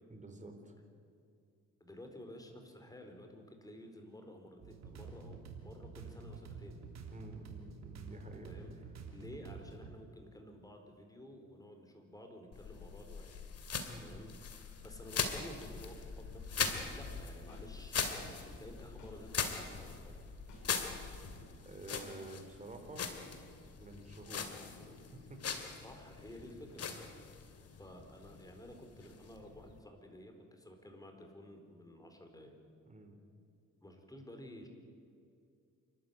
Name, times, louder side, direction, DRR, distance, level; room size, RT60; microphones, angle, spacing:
voice 1, 0.1-0.7 7.1-8.7 13.9-14.2 21.7-23.1 23.8-24.6 24.9-25.4 26.7-27.0 32.9-33.2, right 2 dB, 25° right, 5 dB, 4.0 m, -50 dB
voice 2, 1.8-6.8 8.4-8.7 9.1-13.3 14.0-14.3 14.8-20.2 25.8-27.3 27.8-32.5 33.8-34.7, left 1 dB, 10° left, 4 dB, 4.4 m, -52 dB
sound 1, 4.6-9.9, right 5 dB, 60° right, 3.2 m, -49 dB
sound 2, 12.5-29.8, left 6 dB, 55° left, 2.6 m, -41 dB
sound 3, 16.7-16.9 17.5-17.6 18.2-18.4 19.0-19.1 19.7-19.9 20.5-20.6 21.2-21.4 22.0-22.1, left 5 dB, 75° left, 6.6 m, -53 dB
28.0 x 12.5 x 9.4 m, 2.4 s
cardioid pair, 90°, 30 cm